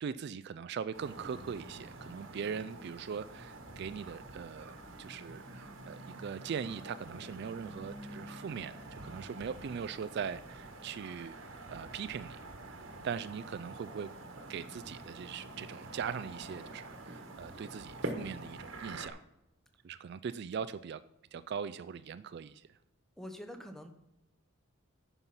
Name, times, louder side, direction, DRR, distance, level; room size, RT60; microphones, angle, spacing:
voice 1, 0.0-4.7 5.0-11.3 11.7-12.4 12.7-14.1 14.5-19.2 19.8-21.0 21.3-22.7, right 6 dB, 55° right, 15 dB, 0.3 m, -40 dB
sound 1, 0.9-19.1, right 2 dB, 70° right, 1.3 m, -46 dB
voice 2, 23.2-23.9, left 1 dB, ahead, 6 dB, 0.8 m, -45 dB
9.9 x 5.6 x 5.8 m, 0.87 s
head